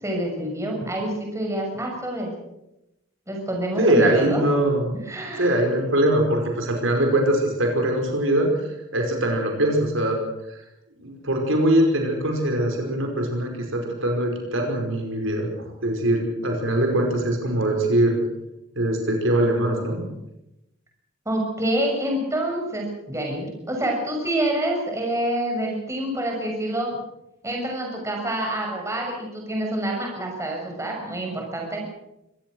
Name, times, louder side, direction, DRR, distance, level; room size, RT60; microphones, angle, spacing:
voice 1, 0.0-2.3 3.3-4.4 5.0-5.6 21.3-26.9 27.4-31.8, right 1 dB, 15° right, 0 dB, 6.8 m, -27 dB
voice 2, 3.8-4.9 5.4-10.2 11.0-18.2 18.8-20.0, right 1 dB, 70° right, 3 dB, 5.4 m, -22 dB
24.5 x 18.5 x 6.4 m, 0.88 s
head